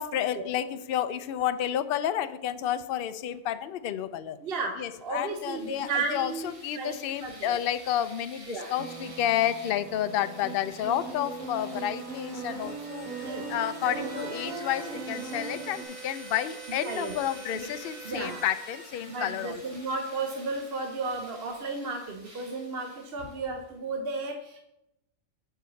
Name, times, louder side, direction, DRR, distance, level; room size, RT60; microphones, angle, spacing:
voice 1, 0.0-4.4 4.8-19.6, left 11 dB, 60° left, 0.6 m, -30 dB
voice 2, 4.4-7.6 8.5-8.7 13.2-13.4 13.8-14.1 16.7-17.2 17.5-17.7 18.0-18.4 19.1-24.6, right 3 dB, 55° right, 1.0 m, -34 dB
sound 1, 5.0-23.6, right 2 dB, 25° right, 1.3 m, -47 dB
sound 2, 8.8-15.8, right 3 dB, 90° right, 1.7 m, -39 dB
7.4 x 4.8 x 6.9 m
omnidirectional pair, 1.3 m